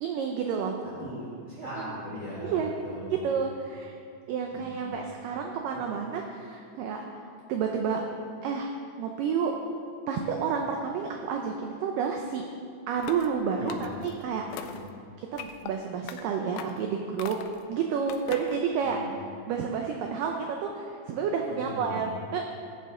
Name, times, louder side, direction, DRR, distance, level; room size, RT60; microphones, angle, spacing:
voice 1, 0.0-0.8 1.6-2.0 2.4-2.7 3.1-3.9 4.3-8.0 8.4-8.7 9.0-9.5 10.1-12.4 12.9-14.6 15.2-17.4 17.7-22.4, right 6 dB, 90° right, 2 dB, 1.9 m, -30 dB
voice 2, 1.0-3.5 4.5-5.0 5.7-5.8 13.6-13.9 14.6-14.8 18.8-19.1 21.5-22.1, left 1 dB, 40° left, -7 dB, 1.6 m, -40 dB
sound 1, 13.0-13.3 13.7-14.1 14.5-14.9 15.4-15.7 16.1-16.2 16.6-16.8 17.2-17.6 18.1-18.6, left 9 dB, 85° left, 2.1 m, -40 dB
15.0 x 8.2 x 3.7 m, 2.3 s
omnidirectional pair, 4.7 m